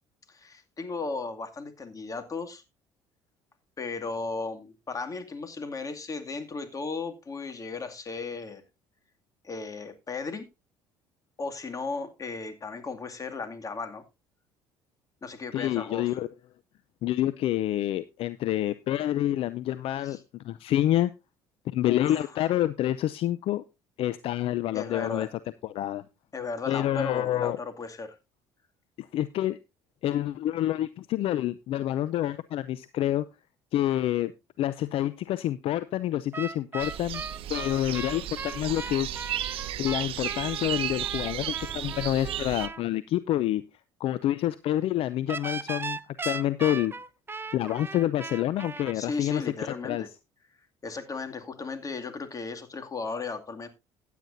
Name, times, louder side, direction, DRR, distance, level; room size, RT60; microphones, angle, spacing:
voice 1, 0.3-2.6 3.8-8.6 9.4-10.5 11.4-14.0 15.2-16.2 20.0-20.2 21.9-22.3 24.7-25.3 26.3-28.2 48.9-50.1 50.8-53.7, left 4 dB, 35° left, 2.4 m, -35 dB
voice 2, 15.5-16.3 17.0-20.2 20.4-21.1 21.7-23.6 24.0-25.3 25.6-26.0 26.7-27.6 29.0-29.6 30.0-33.2 33.7-34.3 34.6-37.2 37.5-39.2 39.8-43.6 44.0-46.0 46.2-46.9 47.5-50.0, left 13 dB, 65° left, 0.6 m, -28 dB
sound 1, 36.3-42.8 45.3-48.9, right 4 dB, 20° right, 0.8 m, -38 dB
sound 2, 36.8-42.7, right 12 dB, 60° right, 0.8 m, -34 dB
15.5 x 9.2 x 2.7 m
supercardioid pair, 75°, 11 cm